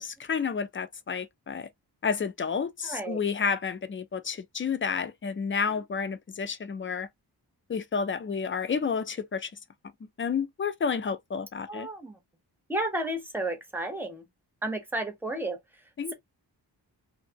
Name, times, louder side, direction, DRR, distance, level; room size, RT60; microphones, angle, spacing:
voice 1, 0.0-1.7 2.0-7.1 7.7-9.5 10.2-11.9 16.0-16.1, left 6 dB, 30° left, 0.4 m, -30 dB
voice 2, 2.8-3.2 11.7-12.2 12.7-14.2 14.6-15.6, right 1 dB, 5° right, 0.7 m, -32 dB
2.7 x 2.5 x 2.8 m
wide cardioid pair, 155°, 41 cm